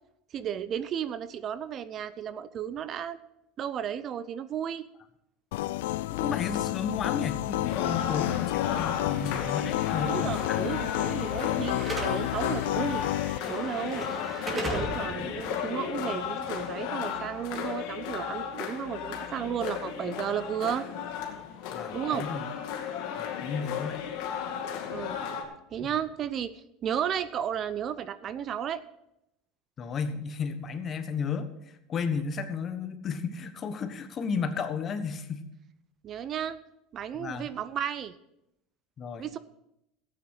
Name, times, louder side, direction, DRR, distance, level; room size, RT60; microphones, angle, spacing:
voice 1, 0.3-3.2 3.6-4.9 10.0-13.0 13.5-14.1 14.5-20.8 21.9-22.3 24.9-25.2 25.7-28.8 36.0-36.6 36.9-38.1 39.2-39.4, right 9 dB, 35° right, 15 dB, 0.5 m, -33 dB
sound 1, 5.5-13.4, left 16 dB, 90° left, 0.3 m, -30 dB
voice 2, 6.1-10.8 14.8-14.9 15.2-15.3 21.7-22.5 23.2-24.0 25.8-25.9 29.8-31.5 31.9-35.5 37.2-37.5 39.0-39.3, left 5 dB, 35° left, 9 dB, 1.2 m, -33 dB
sound 2, 7.6-25.4, left 8 dB, 65° left, 2.1 m, -35 dB
Slam / Alarm, 9.1-17.2, right 1 dB, 20° right, 2.5 m, -40 dB
14.0 x 9.0 x 4.8 m, 0.83 s
supercardioid pair, 135°, 0 cm